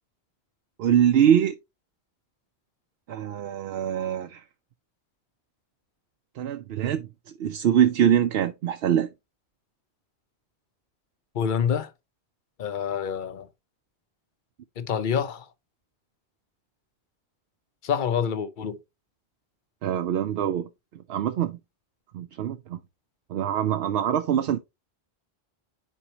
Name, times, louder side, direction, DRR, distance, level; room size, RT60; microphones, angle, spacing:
voice 1, 0.8-1.6 3.1-4.4 6.4-7.1 7.4-9.1 19.8-20.7 21.1-21.6 22.1-22.8 23.3-24.6, right 9 dB, 70° right, 0.8 m, -23 dB
voice 2, 11.3-11.9 12.6-13.5 14.8-15.5 17.8-18.8, left 7 dB, 50° left, 0.8 m, -27 dB
9.9 x 4.5 x 2.8 m
omnidirectional pair, 1.1 m